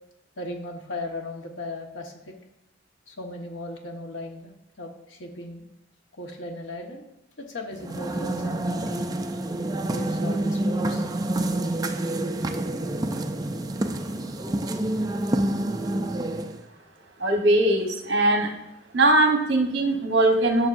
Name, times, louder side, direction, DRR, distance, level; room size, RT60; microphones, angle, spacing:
voice 1, 0.4-2.3 3.1-4.5 4.8-5.6 6.1-7.1 7.4-9.1 9.8-11.0, left 1 dB, 85° left, 2 dB, 1.4 m, -37 dB
sound 1, 7.7-16.7, right 1 dB, 20° right, 0.4 m, -28 dB
voice 2, 17.2-18.5 18.9-20.7, right 1 dB, 65° right, 3 dB, 1.3 m, -20 dB
13.5 x 6.2 x 2.6 m, 0.84 s
head